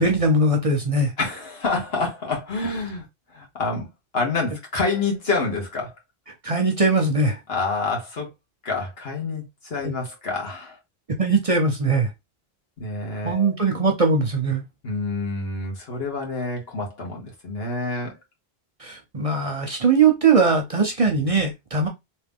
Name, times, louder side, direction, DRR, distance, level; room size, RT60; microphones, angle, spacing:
voice 1, 0.0-1.1 6.4-7.4 9.8-9.9 11.2-12.1 13.2-14.6 18.8-21.9, right 3 dB, 35° right, 0.7 m, -20 dB
voice 2, 1.2-3.1 3.3-3.9 4.1-5.9 7.5-8.3 8.6-10.8 12.8-13.5 14.8-18.2, left 3 dB, 70° left, 1.7 m, -27 dB
3.4 x 2.9 x 3.5 m
omnidirectional pair, 1.1 m